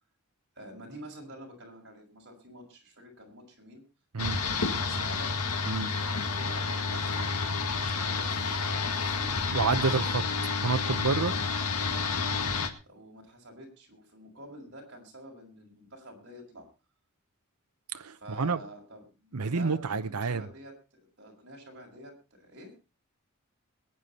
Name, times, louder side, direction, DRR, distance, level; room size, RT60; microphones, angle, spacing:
voice 1, 0.5-3.8 4.4-5.4 6.3-10.1 11.8-16.7 18.1-22.7, right 1 dB, 50° right, 1 dB, 6.2 m, -48 dB
sound 1, 4.2-12.7, left 4 dB, 90° left, 1.9 m, -30 dB
voice 2, 9.5-10.2 10.6-11.3 17.9-18.6 19.3-20.4, right 4 dB, 85° right, 10 dB, 0.8 m, -28 dB
22.0 x 9.5 x 4.3 m, 0.32 s
head